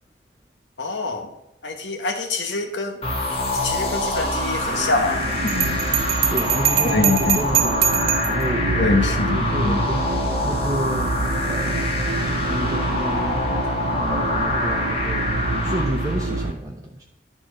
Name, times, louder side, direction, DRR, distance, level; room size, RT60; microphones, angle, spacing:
voice 1, 0.8-1.3 1.6-2.9 3.6-5.8 6.9-7.4 8.8-9.8, left 3 dB, 85° left, 3 dB, 1.2 m, -24 dB
sound 1, 3.0-16.5, left 2 dB, 35° left, 1.6 m, -25 dB
sound 2, 4.6-16.5, right 3 dB, 70° right, 0.6 m, -28 dB
Bell, 5.5-8.4, right 10 dB, 55° right, 1.0 m, -22 dB
voice 2, 6.2-13.5 14.0-15.3 15.6-17.0, right 1 dB, 20° right, 0 dB, 0.8 m, -31 dB
11.0 x 4.4 x 6.4 m, 0.84 s
head